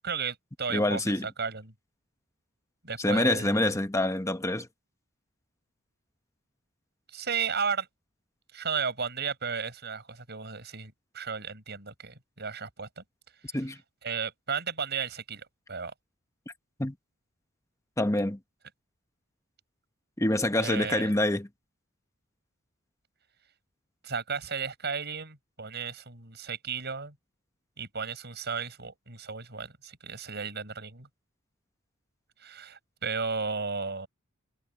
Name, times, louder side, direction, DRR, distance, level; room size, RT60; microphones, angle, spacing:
voice 1, 0.0-1.7 2.8-3.7 7.1-7.9 8.5-13.0 13.5-13.6 14.0-15.9 20.6-21.1 24.0-27.1 27.8-31.1 32.4-34.1, right 5 dB, 55° right, 6.6 m, -34 dB
voice 2, 0.7-1.3 3.0-4.7 13.5-13.8 16.8-16.9 18.0-18.4 20.2-21.5, left 1 dB, 15° left, 1.1 m, -26 dB
head